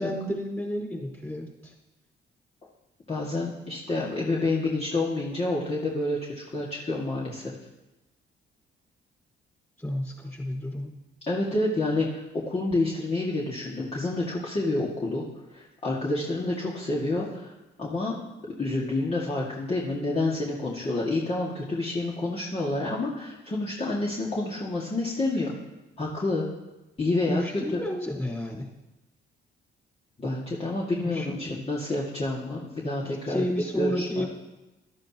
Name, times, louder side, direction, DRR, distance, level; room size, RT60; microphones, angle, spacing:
voice 1, 0.0-1.7 9.8-10.9 27.3-28.7 31.0-31.7 33.1-34.2, left 1 dB, 10° left, -2 dB, 4.7 m, -32 dB
voice 2, 3.1-7.6 11.3-15.2 15.5-18.1 18.6-25.5 26.0-26.5 27.0-27.4 27.7-27.8 30.2-33.4 33.8-34.2, left 2 dB, 30° left, -5 dB, 2.1 m, -28 dB
14.5 x 12.5 x 3.0 m, 1.0 s
cardioid pair, 90°, 20 cm